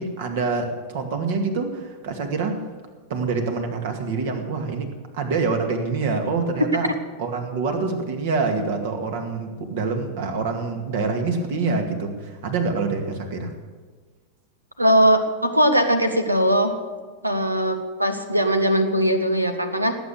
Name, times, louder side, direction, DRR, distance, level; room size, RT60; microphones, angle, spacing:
voice 1, 0.0-2.6 3.1-6.9 7.2-13.5, right 4 dB, 55° right, 5 dB, 2.2 m, -26 dB
voice 2, 14.8-16.7 17.2-19.9, equal, 85° right, 9 dB, 1.3 m, -20 dB
18.5 x 8.7 x 6.8 m, 1.4 s
figure-of-eight pair, 90°, 0 cm